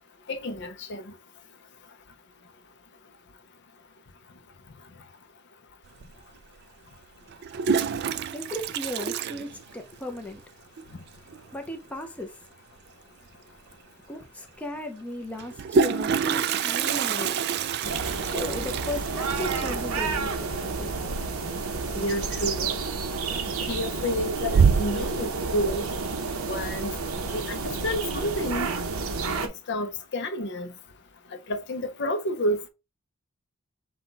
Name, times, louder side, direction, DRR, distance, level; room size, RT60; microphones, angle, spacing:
voice 1, 0.3-1.1 21.9-22.7 23.7-25.9 26.5-26.9 27.3-28.7 29.4-30.7 31.5-32.7, equal, 50° left, 0.6 m, -30 dB
Toilet flush, 6.0-6.1 7.3-10.1 10.4-10.5 10.8-10.9 11.1-11.5 13.3-13.4 13.7-13.8 15.3-22.0 22.3-22.8 23.2-23.7 24.1-25.1, right 6 dB, 50° right, 0.3 m, -27 dB
voice 2, 7.9-10.4 11.5-12.4 14.1-17.4 18.2-21.1, left 1 dB, 5° left, 0.6 m, -36 dB
sound 1, 17.8-29.5, right 4 dB, 80° right, 0.9 m, -30 dB
5.6 x 2.3 x 3.9 m
head